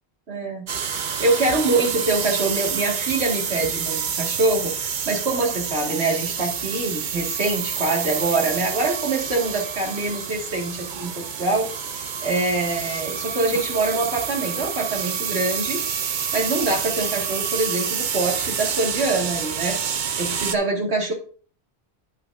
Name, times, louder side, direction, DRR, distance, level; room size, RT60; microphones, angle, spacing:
voice 1, 0.3-0.6 1.2-11.7 12.0-15.8 16.3-19.8 20.2-21.1, right 2 dB, 75° right, 1 dB, 2.3 m, -24 dB
sound 1, 0.7-20.5, right 7 dB, 50° right, 0.8 m, -28 dB
9.7 x 8.8 x 2.6 m, 0.41 s
omnidirectional pair, 1.1 m